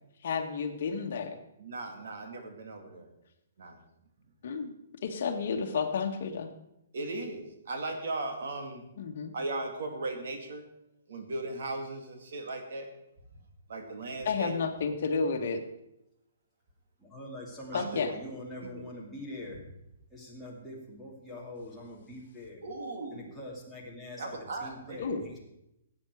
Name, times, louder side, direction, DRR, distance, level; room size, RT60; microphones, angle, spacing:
voice 1, 0.2-1.4 4.4-4.7 5.0-6.5 9.0-9.3 14.2-15.6 17.7-18.1 25.0-25.2, left 5 dB, 50° left, 5 dB, 1.5 m, -31 dB
voice 2, 1.6-3.1 3.6-3.8 6.9-8.8 9.3-10.6 11.1-12.9 13.7-14.6 17.7-18.0 18.6-18.7 22.6-23.3 24.2-25.1, right 2 dB, 60° right, 5 dB, 2.4 m, -37 dB
voice 3, 17.0-19.6 20.1-22.6 23.1-24.4 24.6-25.4, left 1 dB, ahead, -4 dB, 2.3 m, -43 dB
16.0 x 8.8 x 4.7 m, 0.82 s
hypercardioid pair, 175°, 0 cm